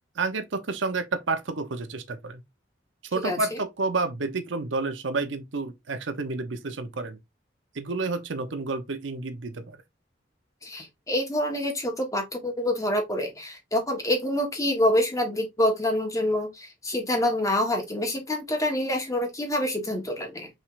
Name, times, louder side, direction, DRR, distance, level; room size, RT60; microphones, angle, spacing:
voice 1, 0.1-2.4 3.0-7.2 7.7-9.8, right 3 dB, 85° right, 0.7 m, -30 dB
voice 2, 10.6-20.5, left 1 dB, 15° left, 1.2 m, -26 dB
6.0 x 3.3 x 2.5 m
head